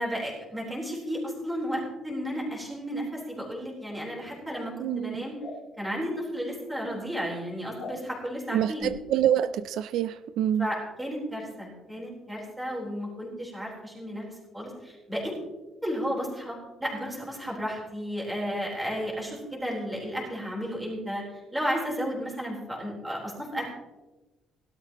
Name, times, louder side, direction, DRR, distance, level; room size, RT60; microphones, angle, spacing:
voice 1, 0.0-5.4 5.8-8.9 10.6-15.3 15.8-21.2 21.5-23.7, equal, 5° right, -3 dB, 3.8 m, -33 dB
voice 2, 4.8-5.2 8.5-10.7, right 10 dB, 70° right, 14 dB, 0.3 m, -26 dB
sound 1, 5.4-5.6 7.8-8.0 8.8-8.9, left 4 dB, 50° left, 2.5 m, -39 dB
17.5 x 12.5 x 3.0 m, 1.1 s
cardioid pair, 155°, 0 cm